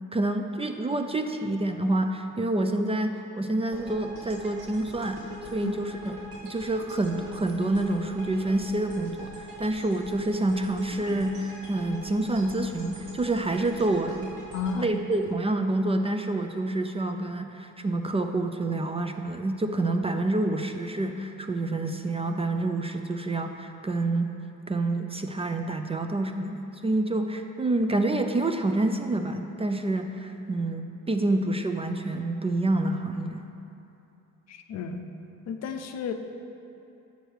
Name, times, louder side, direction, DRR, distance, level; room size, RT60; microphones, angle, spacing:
voice 1, 0.1-5.3 5.5-6.2 6.4-14.3 14.8-24.3 24.7-33.5, right 2 dB, 20° right, 6 dB, 0.4 m, -27 dB
sound 1, 3.7-15.9, equal, 90° right, 1.8 m, -43 dB
voice 2, 14.5-14.9 34.5-35.1 35.5-36.1, left 6 dB, 60° left, 7 dB, 0.6 m, -32 dB
6.5 x 4.6 x 6.6 m, 2.8 s
cardioid pair, 90°, 30 cm